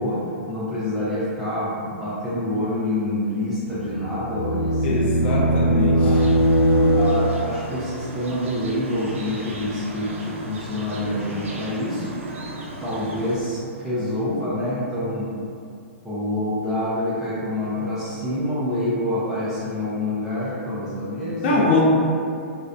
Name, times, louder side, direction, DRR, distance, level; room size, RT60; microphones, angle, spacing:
voice 1, 0.0-6.3 6.9-12.2 12.8-15.3 16.0-21.7, left 1 dB, 5° right, -13 dB, 0.4 m, -27 dB
sound 1, 3.7-7.6, right 1 dB, 85° left, 1.1 m, -20 dB
voice 2, 4.8-6.2 21.4-21.8, left 3 dB, 50° left, -4 dB, 0.5 m, -22 dB
sound 2, 6.1-13.4, right 2 dB, 70° right, 0.4 m, -36 dB
2.5 x 2.0 x 2.4 m, 2.5 s
hypercardioid pair, 120°, 7 cm